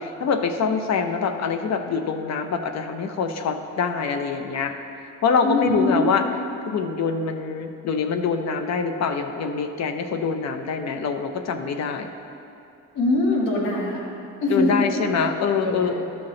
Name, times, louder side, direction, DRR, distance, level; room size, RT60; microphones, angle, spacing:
voice 1, 0.0-4.7 5.2-6.2 6.7-12.1 14.5-16.0, left 5 dB, 60° left, 7 dB, 0.7 m, -24 dB
voice 2, 5.4-6.1 12.9-14.0 14.4-15.0 15.6-16.0, left 1 dB, 85° left, -3 dB, 1.8 m, -23 dB
12.5 x 5.8 x 3.9 m, 2.7 s
cardioid pair, 90°, 30 cm